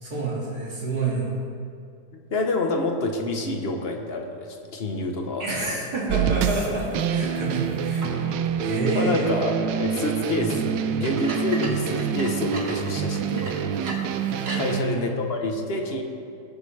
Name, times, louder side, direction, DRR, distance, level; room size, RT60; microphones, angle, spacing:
voice 1, 0.0-1.5 5.4-8.2 8.6-9.3 14.5-15.1, right 2 dB, 60° right, -6 dB, 3.2 m, -28 dB
voice 2, 2.1-5.4 8.9-13.6 14.5-16.0, left 2 dB, 40° left, 2 dB, 1.1 m, -28 dB
sound 1, 6.1-14.8, right 8 dB, 85° right, 1.3 m, -26 dB
sound 2, 6.4-8.4 8.8-9.0 10.0-10.1 11.0-14.8, right 2 dB, 40° right, 1.4 m, -38 dB
20.5 x 7.7 x 3.3 m, 2.4 s
omnidirectional pair, 1.9 m